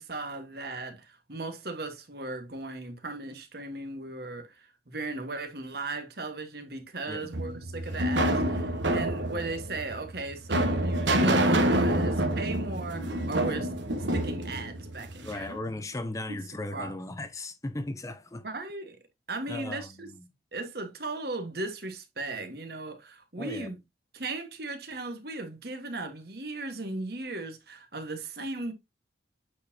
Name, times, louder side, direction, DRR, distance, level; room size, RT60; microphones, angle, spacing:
voice 1, 0.0-13.7 14.1-15.6 16.3-16.4 16.7-17.0 18.4-19.0 19.3-20.1 20.5-23.8 24.1-28.7, right 2 dB, 55° right, 1.4 m, -37 dB
sound 1, 7.3-15.4, right 1 dB, 85° right, 1.3 m, -27 dB
voice 2, 15.2-18.5 19.5-20.1 23.4-23.7, left 2 dB, 15° left, 0.5 m, -37 dB
8.3 x 4.4 x 2.7 m
head